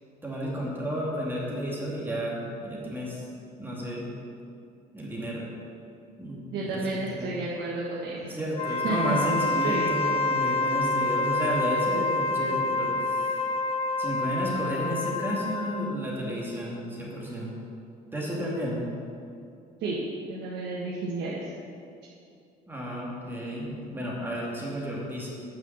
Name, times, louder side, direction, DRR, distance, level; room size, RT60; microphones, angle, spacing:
voice 1, 0.2-3.2 3.6-4.1 4.9-5.5 6.2-7.3 8.2-13.4 14.0-17.5 18.1-18.8 22.7-25.3, equal, 10° right, -4 dB, 2.4 m, -32 dB
voice 2, 6.5-8.4 8.8-9.2 9.6-9.9 19.8-20.0 20.3-21.6, right 2 dB, 80° right, -5 dB, 1.6 m, -31 dB
Wind instrument woodwind instrument, 8.5-16.0, left 2 dB, 35° left, 0.5 m, -27 dB
9.7 x 5.6 x 7.3 m, 2.5 s
cardioid pair, 110°, 17 cm